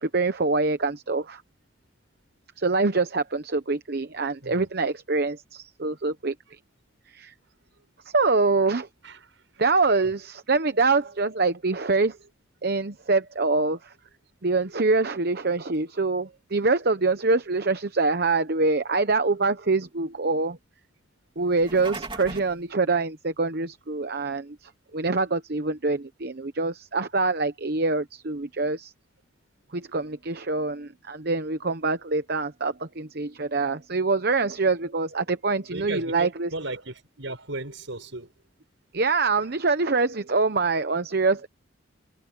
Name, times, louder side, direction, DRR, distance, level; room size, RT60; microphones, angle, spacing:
voice 1, 0.0-1.4 2.6-6.3 7.1-7.3 8.0-8.9 9.6-12.2 12.6-13.9 14.4-20.6 21.4-28.9 29.7-36.5 38.9-41.5, right 3 dB, 50° right, 0.9 m, -25 dB
sound 1, 21.5-22.6, right 3 dB, 25° right, 4.0 m, -38 dB
voice 2, 35.7-38.3, right 2 dB, 70° right, 6.2 m, -35 dB
head